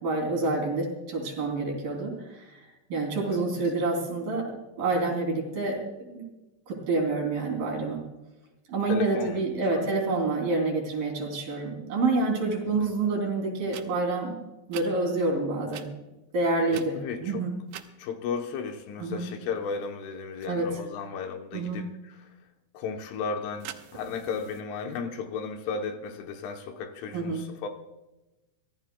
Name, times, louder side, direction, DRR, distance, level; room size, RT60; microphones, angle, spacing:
voice 1, 0.0-2.6 2.9-4.5 4.8-6.2 6.7-8.0 8.7-14.3 14.7-15.9 16.3-17.5 19.0-19.2 20.5-20.7 21.5-21.8 27.1-27.4, right 3 dB, 45° right, 4.7 m, -28 dB
voice 2, 8.9-10.0 12.8-12.9 16.7-17.4 18.0-22.3 22.7-27.7, left 5 dB, 75° left, 3.4 m, -35 dB
sound 1, 13.6-13.9 14.7-14.9 15.7-15.9 16.7-17.2 17.7-17.9 23.6-24.6, right 12 dB, 75° right, 2.9 m, -42 dB
24.0 x 17.0 x 2.3 m
omnidirectional pair, 5.8 m